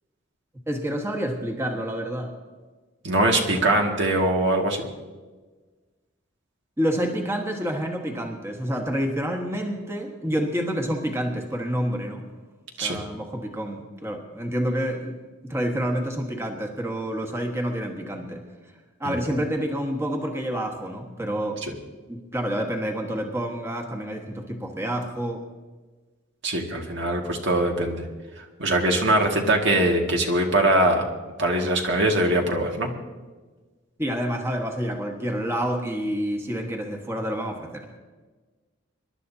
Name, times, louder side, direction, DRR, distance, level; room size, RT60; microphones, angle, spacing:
voice 1, 0.7-2.3 6.8-12.2 12.8-15.1 15.4-18.4 19.0-21.6 22.1-25.4 34.0-37.9, equal, 15° right, 1 dB, 1.5 m, -28 dB
voice 2, 3.0-4.9 12.8-13.0 19.0-19.1 21.6-21.7 26.4-28.1 28.4-31.0 31.4-32.9, right 1 dB, 65° right, 1 dB, 2.0 m, -22 dB
26.5 x 12.0 x 2.8 m, 1.3 s
head